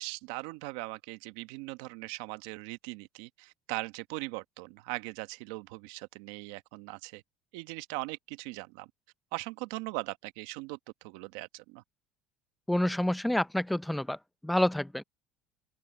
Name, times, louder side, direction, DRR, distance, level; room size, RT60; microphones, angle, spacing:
voice 1, 0.0-7.2 7.5-8.9 9.3-11.8, right 22 dB, 80° right, 1.3 m, -40 dB
voice 2, 12.7-14.2 14.4-15.0, left 1 dB, 5° left, 0.7 m, -28 dB
open air
supercardioid pair, 95°, 0 cm